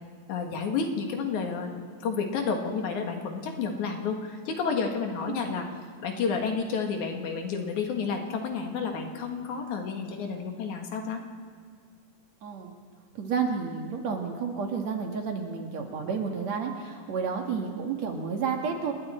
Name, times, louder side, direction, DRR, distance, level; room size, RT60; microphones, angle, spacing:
voice 1, 0.3-5.7 6.0-11.2, left 5 dB, 70° left, 3 dB, 3.0 m, -30 dB
voice 2, 12.4-12.7 13.1-18.9, right 5 dB, 60° right, 3 dB, 2.9 m, -31 dB
28.5 x 21.0 x 4.4 m, 2.1 s
omnidirectional pair, 3.7 m